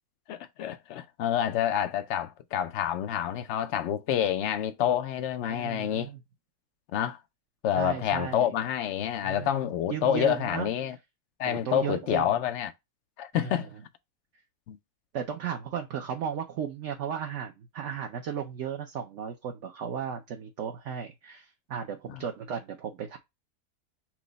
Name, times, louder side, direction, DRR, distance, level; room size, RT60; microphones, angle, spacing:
voice 1, 0.3-6.1 6.9-7.2 7.6-11.0 11.4-12.7 13.2-13.7 14.7-14.8 22.1-22.2, left 10 dB, 75° left, 0.6 m, -28 dB
voice 2, 5.4-6.2 7.8-8.5 9.2-9.5 9.9-10.7 11.4-12.3 13.3-13.7 15.1-23.2, right 8 dB, 60° right, 0.8 m, -35 dB
6.0 x 2.1 x 3.8 m
omnidirectional pair, 1.7 m